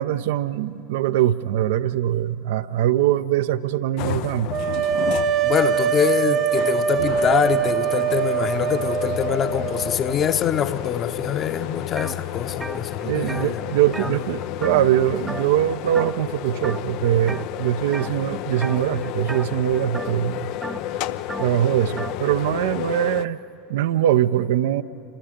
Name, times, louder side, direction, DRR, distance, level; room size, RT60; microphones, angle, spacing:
voice 1, 0.0-4.5 13.0-20.5 21.4-23.4 23.7-24.8, right 12 dB, 65° right, 11 dB, 0.6 m, -22 dB
sound 1, 4.0-23.3, left 13 dB, 55° left, 0.6 m, -32 dB
sound 2, 4.5-10.4, right 7 dB, 40° right, 0.9 m, -23 dB
voice 2, 5.4-13.6 14.0-14.2, left 8 dB, 40° left, 8 dB, 1.2 m, -24 dB
sound 3, 12.0-12.2 12.5-15.0 15.3-15.6 15.9-16.3 16.6-17.4 17.9-18.2 18.6-22.2, right 3 dB, 10° right, 0.5 m, -35 dB
28.5 x 25.0 x 5.2 m, 3.0 s
figure-of-eight pair, 80°, 0 cm